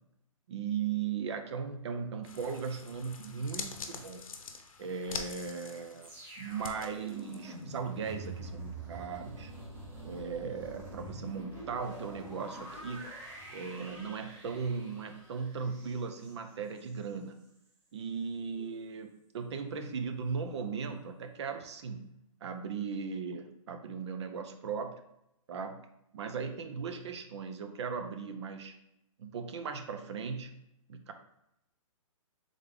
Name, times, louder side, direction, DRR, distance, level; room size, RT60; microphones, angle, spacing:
voice 1, 0.5-4.2 4.8-6.1 6.4-9.5 10.0-13.1 13.5-17.4 17.9-22.1 22.4-25.0 25.5-25.8 26.1-28.8 29.2-30.6 30.9-31.1, right 6 dB, 55° right, 7 dB, 0.5 m, -37 dB
sound 1, 2.2-7.9 8.2-8.3, left 5 dB, 75° left, 0.7 m, -45 dB
sound 2, 6.0-17.1 17.4-17.7, right 1 dB, 10° right, 0.7 m, -46 dB
3.5 x 3.5 x 3.6 m, 0.82 s
hypercardioid pair, 160°, 18 cm